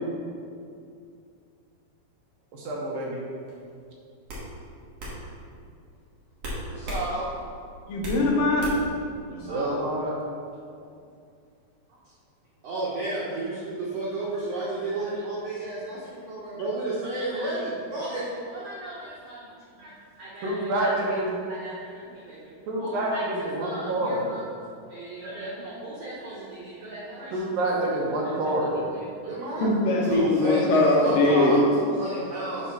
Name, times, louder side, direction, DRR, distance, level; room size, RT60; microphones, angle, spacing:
voice 1, 2.5-3.2 9.3-10.1 20.4-21.3 22.7-24.2 27.3-28.7, right 1 dB, 70° right, -3 dB, 2.6 m, -27 dB
sound 1, 3.5-3.7 4.3-4.5 5.0-5.2 6.4-7.1 7.4-8.2 8.6-9.0, equal, 50° right, 2.1 m, -34 dB
voice 2, 6.7-7.3 9.3-9.8 10.8-10.9 12.6-19.9 20.2-21.2 21.5-24.4 24.9-27.6 28.2-29.7 30.0-32.7, right 2 dB, 85° right, -7 dB, 1.4 m, -33 dB
voice 3, 7.9-8.7 29.6-31.5, left 2 dB, 70° left, -3 dB, 2.6 m, -21 dB
7.1 x 3.6 x 5.7 m, 2.4 s
omnidirectional pair, 4.5 m